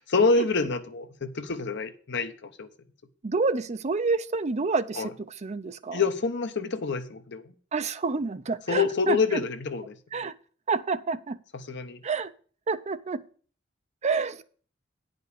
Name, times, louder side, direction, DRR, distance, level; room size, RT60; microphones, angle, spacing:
voice 1, 0.0-2.7 4.9-5.1 5.9-7.5 8.7-10.0 11.5-12.0, left 4 dB, 60° left, 0.8 m, -27 dB
voice 2, 3.2-5.0 5.4-6.0 7.7-9.2 10.1-10.3 10.7-11.4 12.0-12.3 12.7-13.2 14.0-14.4, right 4 dB, 35° right, 0.5 m, -28 dB
9.5 x 5.3 x 6.6 m
head